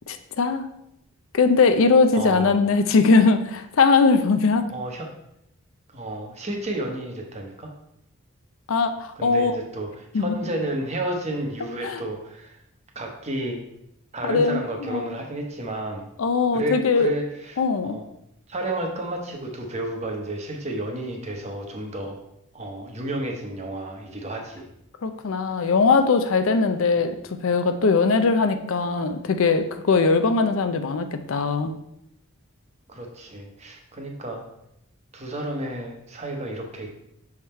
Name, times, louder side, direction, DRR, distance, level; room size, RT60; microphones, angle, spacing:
voice 1, 0.1-0.7 1.3-4.7 8.7-9.5 10.1-10.4 11.8-12.0 14.2-15.1 16.2-17.1 17.6-18.0 25.0-27.2 27.4-31.7, left 4 dB, 65° left, 8 dB, 0.5 m, -20 dB
voice 2, 2.1-2.6 4.7-5.1 5.9-7.7 9.2-12.6 12.9-13.6 14.1-16.1 16.5-18.0 18.5-22.2 22.5-24.7 32.9-34.4 35.1-36.9, right 1 dB, 30° right, 2 dB, 0.9 m, -31 dB
6.2 x 3.6 x 4.3 m, 0.80 s
head